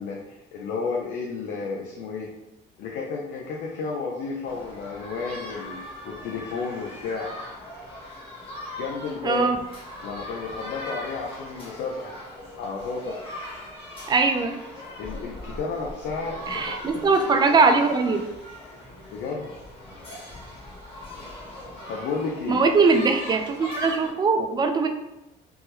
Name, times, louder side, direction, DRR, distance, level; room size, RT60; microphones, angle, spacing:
voice 1, 0.0-2.3 2.8-5.8 6.0-7.3 8.8-9.5 10.0-12.1 12.6-13.2 15.0-17.1 19.1-19.5 21.9-22.6, left 4 dB, 80° left, -2 dB, 0.5 m, -32 dB
sound 1, 4.4-24.1, left 1 dB, 30° left, 1.1 m, -40 dB
voice 2, 9.2-9.6 14.1-14.6 16.5-18.2 22.5-24.9, right 4 dB, 25° right, 6 dB, 0.4 m, -21 dB
3.4 x 2.1 x 3.0 m, 0.95 s
cardioid pair, 110°, 17 cm